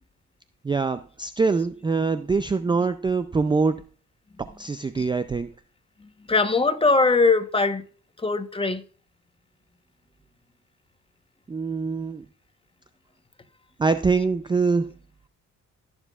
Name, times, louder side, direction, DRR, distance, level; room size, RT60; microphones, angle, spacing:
voice 1, 0.6-3.8 4.4-5.5 11.5-12.2 13.8-14.9, right 4 dB, 15° right, 0.4 m, -24 dB
voice 2, 6.0-7.8 8.2-8.8, left 3 dB, 20° left, 1.0 m, -22 dB
19.0 x 7.2 x 2.4 m
cardioid pair, 90°, 30 cm